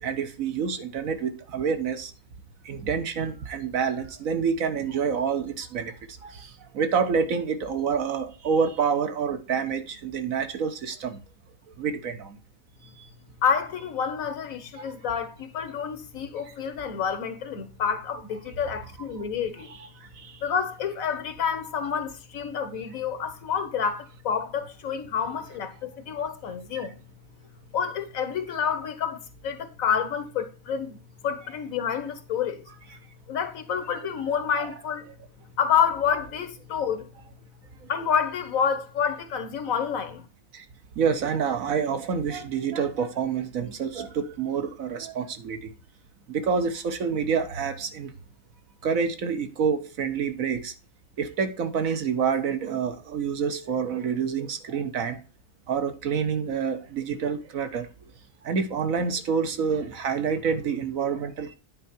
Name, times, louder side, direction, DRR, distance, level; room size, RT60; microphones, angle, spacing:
voice 1, 0.0-2.1 2.6-5.9 6.2-11.2 11.8-12.4 14.8-14.9 20.2-20.3 34.0-34.4 40.5-40.6 41.0-45.7 46.3-48.1 48.8-50.7 51.2-55.2 55.7-57.9 58.4-61.5, right 6 dB, 75° right, 1.5 m, -27 dB
voice 2, 13.4-19.7 20.4-27.0 27.7-31.0 31.2-32.6 33.3-35.1 35.6-37.1 37.9-40.2, left 7 dB, 70° left, 1.5 m, -28 dB
9.6 x 4.6 x 4.3 m
omnidirectional pair, 1.5 m